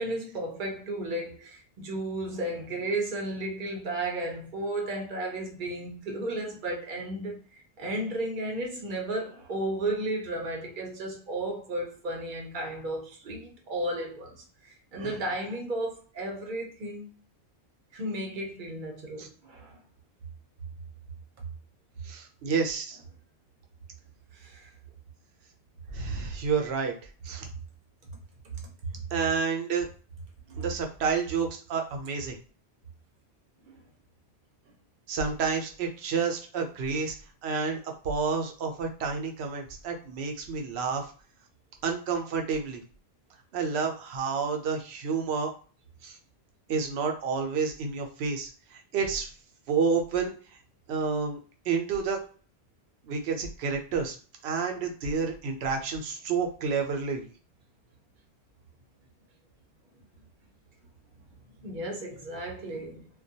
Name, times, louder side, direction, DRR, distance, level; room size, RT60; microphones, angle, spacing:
voice 1, 0.0-17.1 17.9-19.8 24.3-24.7 30.5-30.7 33.6-33.8 61.6-63.0, right 1 dB, 55° right, 0.7 m, -34 dB
voice 2, 22.0-23.0 25.9-26.9 27.2-27.5 29.1-29.9 30.6-32.4 35.1-37.2 37.4-41.1 41.8-42.8 43.5-45.5 46.0-46.2 46.7-49.3 49.7-50.3 50.9-51.4 51.7-52.2 53.0-54.2 54.4-57.3, right 5 dB, 90° right, 0.8 m, -29 dB
2.2 x 2.2 x 2.6 m
omnidirectional pair, 1.0 m